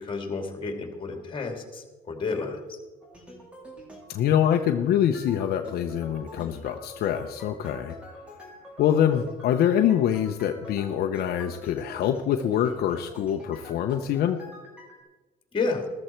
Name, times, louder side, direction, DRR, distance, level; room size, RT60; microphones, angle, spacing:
voice 1, 0.0-2.8 15.5-15.8, left 4 dB, 30° left, 4 dB, 2.7 m, -31 dB
sound 1, 3.0-4.7 5.1-15.0, left 1 dB, 5° right, 3.7 m, -46 dB
voice 2, 4.1-8.0 8.8-14.4, left 9 dB, 65° left, 5 dB, 0.8 m, -25 dB
14.0 x 13.0 x 4.5 m, 1.3 s
cardioid pair, 110°, 17 cm